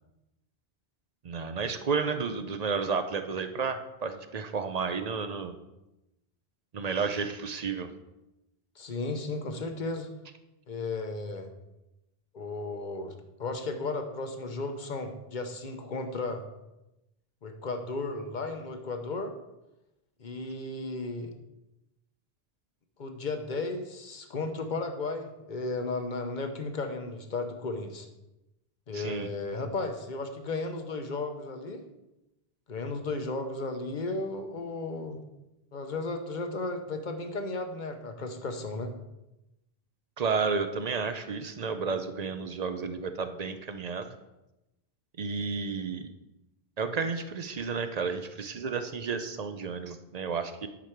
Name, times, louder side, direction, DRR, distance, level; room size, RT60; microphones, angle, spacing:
voice 1, 1.2-5.5 6.7-7.9 28.9-29.3 40.2-44.1 45.2-46.1 46.8-50.7, right 5 dB, 50° right, 9 dB, 0.6 m, -32 dB
voice 2, 8.8-10.1 10.7-11.5 12.3-13.1 13.4-16.4 17.4-19.3 20.2-21.3 23.0-28.1 28.9-31.8 32.7-35.2 35.7-38.9, left 3 dB, 50° left, 6 dB, 0.9 m, -34 dB
10.0 x 5.0 x 4.5 m, 0.95 s
omnidirectional pair, 1.0 m